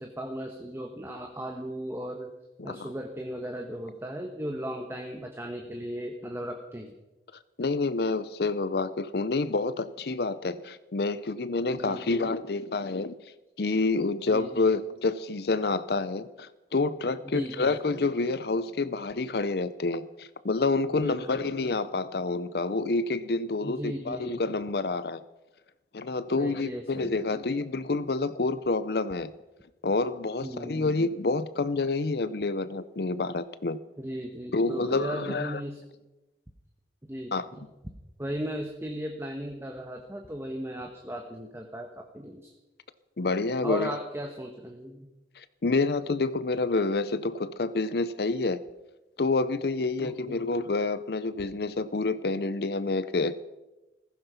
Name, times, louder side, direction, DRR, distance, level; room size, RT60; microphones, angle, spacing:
voice 1, 0.0-2.3 2.6-6.9 11.7-12.3 14.3-14.7 17.2-17.8 20.9-21.6 23.6-24.4 26.4-27.3 30.4-31.0 34.0-35.8 37.1-37.7 38.2-42.5 43.6-45.1 50.0-50.7, equal, 15° right, 3 dB, 1.2 m, -37 dB
voice 2, 7.6-13.2 13.6-25.2 25.9-29.3 29.8-33.8 34.5-35.6 37.3-37.5 43.2-43.9 45.4-48.6 49.2-53.3, left 3 dB, 60° left, 14 dB, 0.6 m, -28 dB
15.5 x 15.0 x 5.8 m, 1.0 s
head